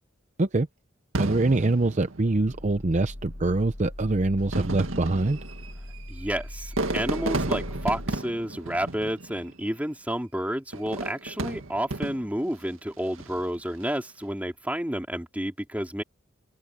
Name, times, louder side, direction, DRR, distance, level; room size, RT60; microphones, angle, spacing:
Fireworks, 1.1-2.8 3.6-3.7 4.4-9.7 10.7-12.5 13.1-13.5, right 2 dB, 90° right, 2.0 m, -33 dB
voice 1, 1.2-5.4, right 2 dB, 35° right, 0.7 m, -24 dB
sound 1, 2.2-8.2, left 1 dB, 35° left, 1.3 m, -40 dB
voice 2, 6.1-16.0, right 1 dB, 10° right, 3.0 m, -30 dB
open air
head